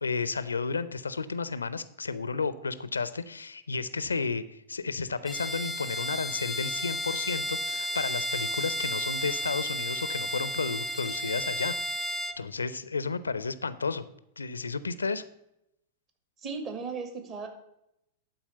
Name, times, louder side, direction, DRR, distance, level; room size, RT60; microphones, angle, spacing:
voice 1, 0.0-14.0 14.4-15.2, left 4 dB, 85° left, 15 dB, 0.5 m, -32 dB
Bowed string instrument, 5.2-12.4, equal, ahead, 0.6 m, -33 dB
voice 2, 16.4-17.5, right 5 dB, 35° right, 5 dB, 1.9 m, -36 dB
11.5 x 4.4 x 6.8 m, 0.81 s
figure-of-eight pair, 95°, 0 cm